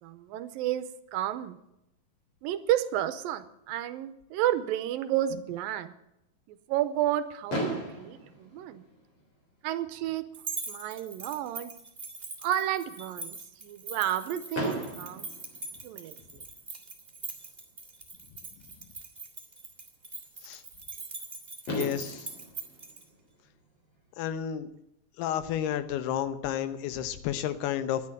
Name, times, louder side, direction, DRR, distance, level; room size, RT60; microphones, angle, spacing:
voice 1, 0.0-1.6 2.4-5.9 6.5-8.8 9.6-10.3 10.7-11.7 12.4-15.3 15.8-16.4, right 12 dB, 80° right, 12 dB, 2.3 m, -31 dB
Fireworks, 7.5-9.5 10.3-10.4 10.6-10.8 11.1-11.2 14.5-16.4 18.1-18.2 21.2-21.3 21.7-24.0, equal, 30° left, 4.0 m, -37 dB
sound 1, 10.3-23.0, right 3 dB, 30° right, 1.0 m, -42 dB
voice 2, 21.7-22.3 24.2-24.7 25.2-28.0, left 10 dB, 90° left, 12 dB, 3.0 m, -31 dB
11.5 x 10.0 x 8.5 m, 0.86 s
omnidirectional pair, 4.5 m